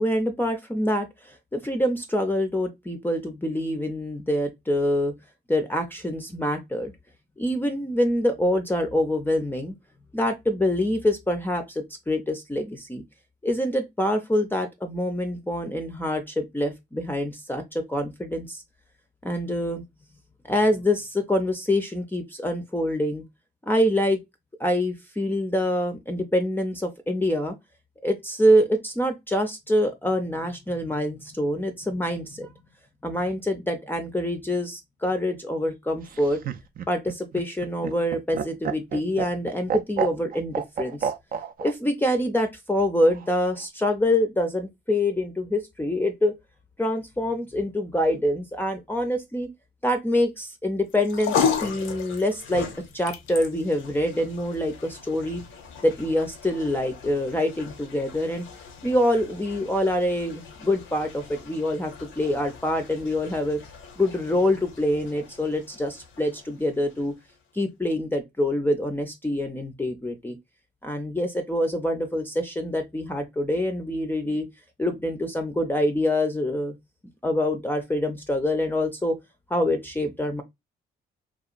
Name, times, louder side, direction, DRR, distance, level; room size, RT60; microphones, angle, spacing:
voice 1, 0.0-5.1 5.5-6.9 7.4-9.7 10.1-13.0 13.4-18.6 19.2-19.9 20.5-23.2 23.7-24.2 24.6-27.6 28.0-32.5 33.0-36.4 36.9-41.1 41.6-46.3 46.8-49.5 49.8-52.7 52.9-55.4 55.8-58.5 58.8-63.6 64.0-67.1 67.5-70.4 70.8-74.5 74.8-76.8 77.2-79.2 79.5-80.4, left 1 dB, 10° left, 0.5 m, -25 dB
Laughter, 36.0-41.7 43.0-43.7, right 8 dB, 45° right, 0.4 m, -30 dB
sound 1, 50.9-67.4, left 6 dB, 75° left, 0.6 m, -35 dB
2.8 x 2.2 x 2.4 m
cardioid pair, 90°, 20 cm